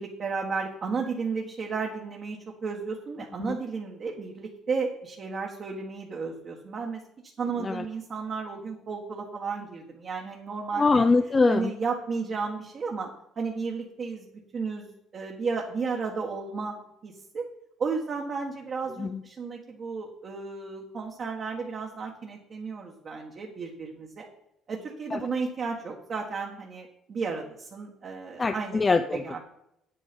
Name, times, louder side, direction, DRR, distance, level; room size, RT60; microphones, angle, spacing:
voice 1, 0.0-7.0 7.4-10.9 11.5-13.1 13.4-14.2 14.5-17.4 17.8-24.3 24.7-28.8 29.2-29.4, right 4 dB, 40° right, 0 dB, 1.5 m, -33 dB
voice 2, 10.8-11.7 19.0-19.2 25.1-25.2 28.4-29.4, left 3 dB, 20° left, 8 dB, 0.5 m, -23 dB
9.0 x 8.6 x 5.3 m, 0.81 s
cardioid pair, 140°, 0 cm